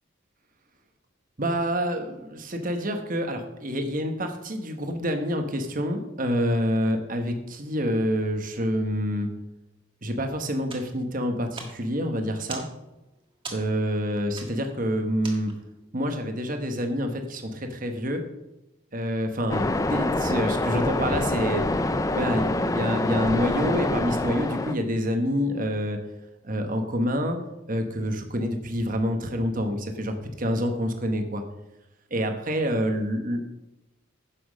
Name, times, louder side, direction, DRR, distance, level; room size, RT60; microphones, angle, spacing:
voice 1, 1.4-9.3 10.0-12.6 13.5-15.5 15.9-18.2 18.9-26.0 26.4-27.4 27.7-31.4 32.1-33.4, equal, 40° right, 5 dB, 1.2 m, -27 dB
sound 1, 10.7-15.9, right 4 dB, 25° right, 1.4 m, -43 dB
Waves surf, 19.5-24.7, left 2 dB, 15° left, 0.4 m, -26 dB
10.0 x 6.2 x 6.3 m, 0.94 s
head